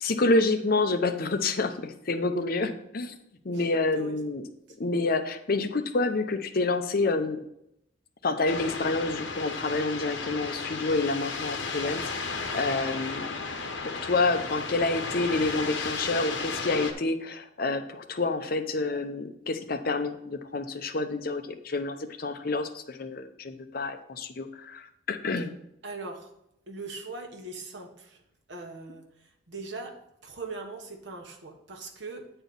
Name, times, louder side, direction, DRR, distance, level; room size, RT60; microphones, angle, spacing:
voice 1, 0.0-3.2 3.4-4.4 4.8-7.4 8.2-13.3 13.8-25.5, left 3 dB, 50° left, 8 dB, 0.7 m, -28 dB
voice 2, 3.5-4.2 25.8-26.3 26.7-28.2 28.5-29.1 29.5-32.3, right 3 dB, 70° right, 4 dB, 1.2 m, -40 dB
sound 1, 8.5-16.9, left 4 dB, 75° left, 1.0 m, -34 dB
9.0 x 4.5 x 5.3 m, 0.79 s
head